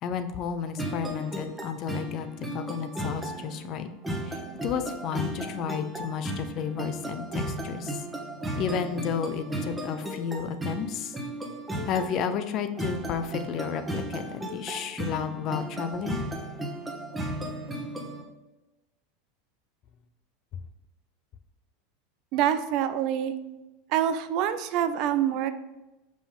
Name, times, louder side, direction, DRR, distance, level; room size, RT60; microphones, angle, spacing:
voice 1, 0.0-2.3 2.5-3.9 4.2-8.0 8.5-11.2 11.8-16.2, left 7 dB, 45° left, 9 dB, 0.6 m, -32 dB
sound 1, 0.8-18.2, right 1 dB, 10° right, 1.2 m, -35 dB
voice 2, 22.3-23.3 23.9-25.5, right 10 dB, 55° right, 11 dB, 0.5 m, -26 dB
5.4 x 5.0 x 3.7 m, 1.0 s
hypercardioid pair, 110°, 0 cm